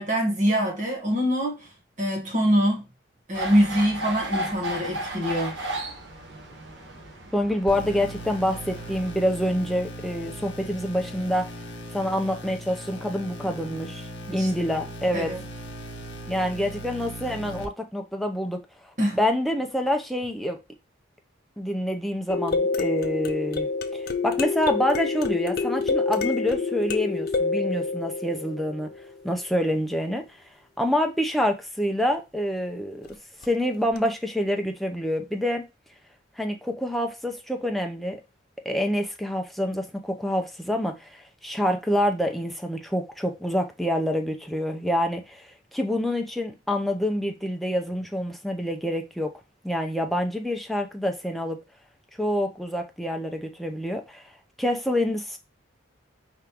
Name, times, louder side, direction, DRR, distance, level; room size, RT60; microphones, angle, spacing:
voice 1, 0.0-1.7 2.0-2.8 3.3-5.5 14.3-14.5 15.1-15.4 19.0-19.2, equal, 40° right, 1.5 m, -24 dB
sound 1, 3.3-9.1, right 1 dB, 65° right, 1.3 m, -34 dB
voice 2, 7.3-11.5 11.9-15.3 16.3-18.6 19.1-20.6 21.6-28.9 29.2-30.3 30.8-33.1 33.4-35.7 36.4-38.2 38.6-49.3 49.6-51.6 52.2-54.2 54.6-55.4, equal, ahead, 0.6 m, -27 dB
sound 2, 7.7-17.7, right 1 dB, 70° left, 1.4 m, -38 dB
sound 3, 22.3-29.2 33.4-33.5 34.0-34.1, left 4 dB, 50° left, 0.6 m, -27 dB
5.0 x 3.6 x 3.0 m
head